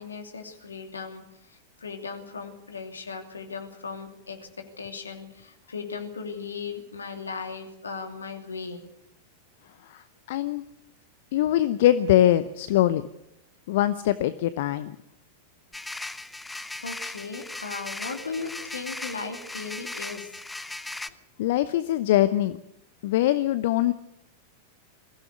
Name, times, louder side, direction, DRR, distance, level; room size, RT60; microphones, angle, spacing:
voice 1, 0.0-8.8 16.8-20.4, left 5 dB, 75° left, 5 dB, 2.9 m, -37 dB
voice 2, 10.3-10.6 11.3-13.1 13.7-14.9 21.4-22.6 23.0-23.9, left 13 dB, 55° left, 14 dB, 0.8 m, -22 dB
sound 1, 15.7-21.1, left 2 dB, 5° left, 0.9 m, -37 dB
22.0 x 16.0 x 8.1 m, 0.78 s
figure-of-eight pair, 90°, 0 cm